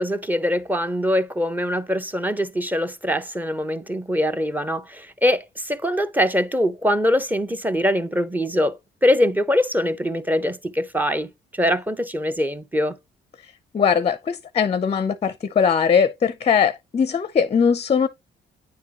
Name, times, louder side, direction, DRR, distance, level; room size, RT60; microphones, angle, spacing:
voice 1, 0.0-8.8 9.0-11.3 11.6-12.9, left 1 dB, 10° right, 0.8 m, -23 dB
voice 2, 13.7-18.1, left 6 dB, 30° left, 0.5 m, -20 dB
9.5 x 3.7 x 2.9 m
cardioid pair, 90°, 20 cm